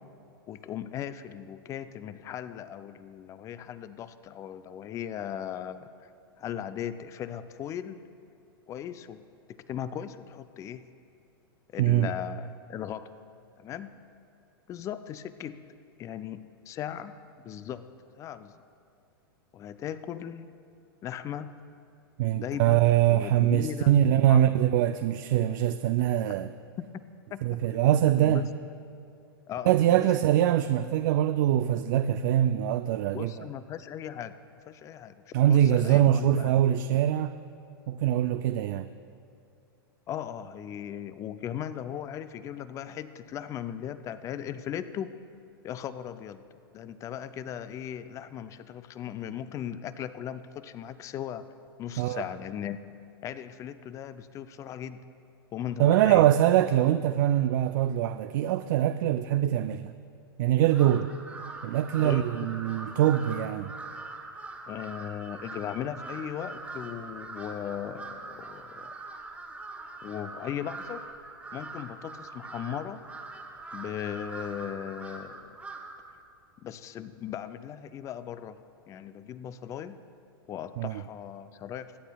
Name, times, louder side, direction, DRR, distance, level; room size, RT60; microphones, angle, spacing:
voice 1, 0.5-5.9 6.4-8.0 8.7-9.2 9.7-10.8 11.7-13.1 13.6-13.9 14.7-15.6 16.0-17.1 17.4-17.8 18.2-18.5 19.5-20.5 21.0-21.5 22.3-22.8 23.1-23.9 24.3-24.4 26.8-27.0 27.3-27.6 28.2-28.4 29.5-29.7 33.1-34.3 34.7-35.1 35.5-36.5 40.1-45.1 45.6-46.4 46.7-51.4 51.8-52.9 53.2-55.0 55.5-56.2 62.0-62.5 64.7-68.9 70.0-71.0 71.5-73.0 73.7-75.5 76.6-78.6 78.9-80.0 80.5-82.0, left 10 dB, 25° left, 13 dB, 0.4 m, -37 dB
voice 2, 11.8-12.1 22.2-26.5 27.4-28.4 29.6-33.5 35.3-37.3 37.9-38.9 52.0-52.3 55.8-59.9 60.4-61.1 61.6-63.7 80.8-81.0, right 12 dB, 55° right, 9 dB, 0.4 m, -23 dB
Crow, 60.7-76.1, right 3 dB, 10° right, 1.0 m, -43 dB
22.5 x 8.9 x 2.3 m, 2.5 s
hypercardioid pair, 115°, 13 cm